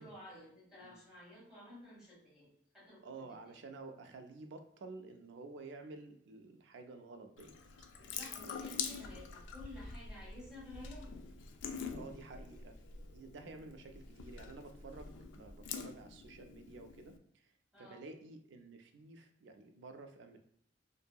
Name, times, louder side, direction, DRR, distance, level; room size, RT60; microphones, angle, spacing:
voice 1, 0.0-3.6 8.0-11.1 17.7-18.1, left 1 dB, 5° right, -9 dB, 1.5 m, -53 dB
voice 2, 3.0-7.5 9.8-10.0 11.9-12.8 13.1-17.5 17.8-20.4, right 3 dB, 75° right, 6 dB, 0.4 m, -51 dB
Water tap faucet / Sink (filling or washing) / Drip, 7.4-17.2, left 6 dB, 80° left, 0.3 m, -46 dB
2.6 x 2.6 x 2.2 m, 0.66 s
head